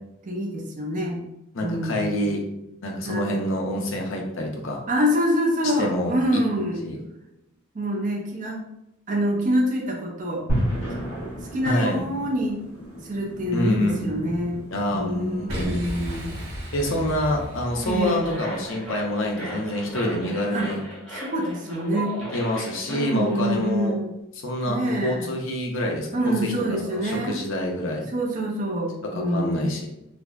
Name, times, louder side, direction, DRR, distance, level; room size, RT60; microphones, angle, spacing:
voice 1, 0.2-1.2 1.6-2.3 3.0-3.4 4.9-6.8 7.7-8.7 9.1-10.5 11.5-12.6 13.0-14.6 14.9-16.3 17.8-18.3 20.5-20.7 21.1-22.2 22.9-24.1 24.7-25.4 26.1-27.4 28.1-29.7, equal, 35° right, 0 dB, 0.5 m, -26 dB
voice 2, 1.5-2.4 2.8-4.8 5.8-6.5 6.8-7.0 11.7-12.0 13.5-14.1 14.7-15.8 16.7-20.8 22.3-23.9 24.4-28.1 29.3-29.9, left 1 dB, 60° left, 0 dB, 0.6 m, -27 dB
sound 1, 10.5-20.7, equal, 80° left, 0.9 m, -35 dB
Boom, 15.5-18.5, equal, 80° right, 0.8 m, -34 dB
sound 2, 17.5-23.7, right 1 dB, 5° left, 0.8 m, -37 dB
3.4 x 2.1 x 2.3 m, 0.84 s
head